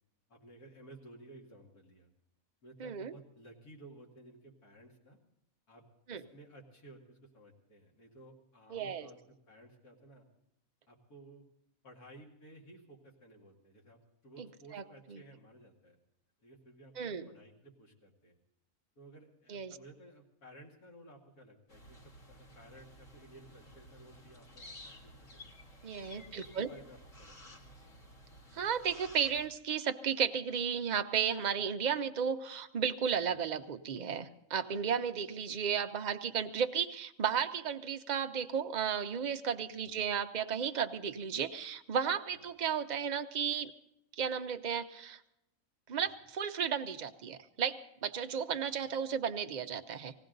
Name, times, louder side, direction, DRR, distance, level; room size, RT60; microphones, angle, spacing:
voice 1, 0.3-2.1 2.6-5.2 5.7-5.8 6.1-10.3 10.9-11.4 11.8-16.0 16.4-18.4 19.0-25.4 26.1-28.0 33.3-33.4 39.9-40.0 42.3-42.4 45.9-46.1 48.7-48.9, right 1 dB, 80° left, -2 dB, 2.7 m, -56 dB
voice 2, 2.8-3.1 6.1-6.2 8.7-9.1 14.4-14.5 14.7-14.8 15.1-15.2 17.0-17.3 19.5-19.8 25.8-26.7 28.5-43.7 44.1-45.2 45.9-50.1, right 7 dB, 50° right, 7 dB, 0.5 m, -34 dB
sound 1, 21.7-29.5, left 1 dB, 55° left, 2.1 m, -54 dB
20.0 x 16.0 x 3.9 m, 0.81 s
omnidirectional pair, 1.6 m